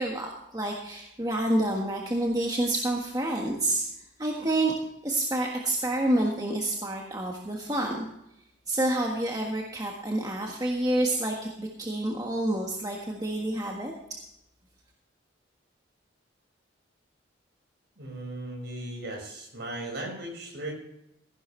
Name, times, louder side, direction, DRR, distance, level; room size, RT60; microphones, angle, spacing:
voice 1, 0.0-3.8 4.2-4.7 5.0-8.1 8.7-13.9, right 1 dB, 20° right, 0 dB, 1.5 m, -28 dB
voice 2, 18.0-20.7, right 1 dB, 60° right, 1 dB, 5.5 m, -37 dB
15.5 x 11.5 x 3.2 m, 0.81 s
head